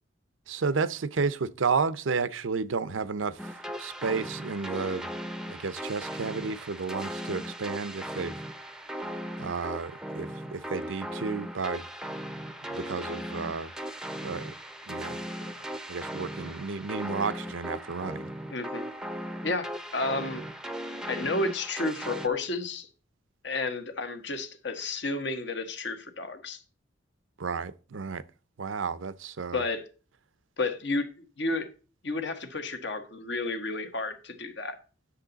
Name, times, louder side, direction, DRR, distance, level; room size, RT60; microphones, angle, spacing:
voice 1, 0.5-3.4 3.8-5.1 5.5-8.4 9.4-11.8 12.7-13.7 14.2-14.5 14.9-15.2 15.9-18.3 27.4-28.2 28.6-29.6, right 5 dB, 80° right, 0.6 m, -32 dB
sound 1, 3.4-22.3, equal, 5° right, 0.6 m, -38 dB
voice 2, 18.5-18.8 19.4-20.4 21.1-22.9 23.4-26.6 29.5-29.8 30.6-31.1 31.4-31.7 32.0-34.8, left 3 dB, 60° left, 1.3 m, -31 dB
10.0 x 6.9 x 4.0 m
head